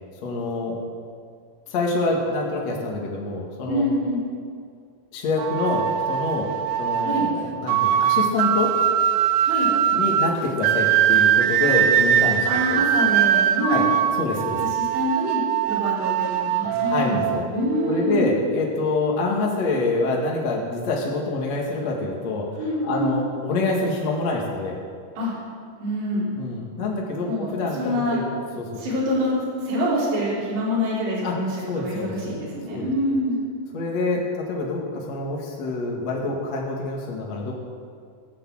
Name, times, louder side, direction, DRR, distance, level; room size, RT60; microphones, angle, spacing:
voice 1, 0.2-0.8 1.7-3.8 5.1-6.5 6.8-8.8 9.9-12.8 13.7-13.9 14.2-14.6 16.6-17.4 17.9-24.8 26.4-28.3 28.6-28.7 31.2-31.4 31.7-32.4 32.7-32.9 33.7-37.5, left 3 dB, 50° left, -2 dB, 2.1 m, -26 dB
voice 2, 3.7-4.2 7.0-7.3 9.4-9.7 11.6-11.7 12.5-13.9 14.6-15.4 15.7-18.3 22.6-23.2 25.2-25.3 25.8-26.4 27.3-27.5 27.8-28.2 28.8-33.4, equal, 55° right, -7 dB, 6.1 m, -26 dB
sound 1, 5.4-18.2, right 10 dB, 90° right, 2.5 m, -22 dB
18.0 x 8.6 x 7.8 m, 2.2 s
omnidirectional pair, 5.9 m